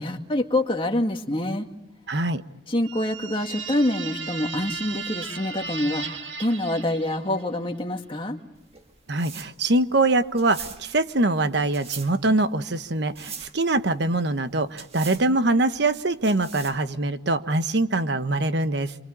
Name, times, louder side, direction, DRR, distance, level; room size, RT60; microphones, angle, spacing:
voice 1, 0.0-1.7 2.7-8.4, left 1 dB, 30° left, 3 dB, 2.0 m, -26 dB
voice 2, 2.1-2.4 9.1-18.9, right 2 dB, 65° right, 10 dB, 1.2 m, -23 dB
sound 1, 2.8-7.6, right 5 dB, 85° right, 1.8 m, -36 dB
sound 2, 8.6-17.0, right 6 dB, 35° right, 1.8 m, -42 dB
28.0 x 25.0 x 8.6 m, 0.89 s
head